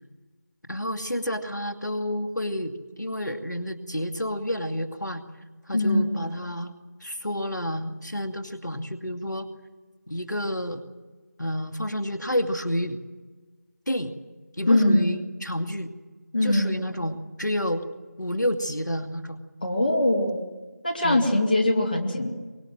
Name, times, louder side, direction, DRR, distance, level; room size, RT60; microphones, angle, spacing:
voice 1, 0.7-5.2 5.7-6.7 7.0-9.5 10.1-10.8 11.4-13.0 13.9-14.1 14.6-15.9 16.4-17.8 18.2-19.4 21.0-21.3, equal, 90° left, 7 dB, 2.3 m, -30 dB
voice 2, 5.7-6.1 14.7-15.1 16.3-16.8 19.6-20.4 20.8-22.3, left 1 dB, 30° left, 1 dB, 2.2 m, -22 dB
24.0 x 22.5 x 7.7 m, 1.3 s
figure-of-eight pair, 170°, 10 cm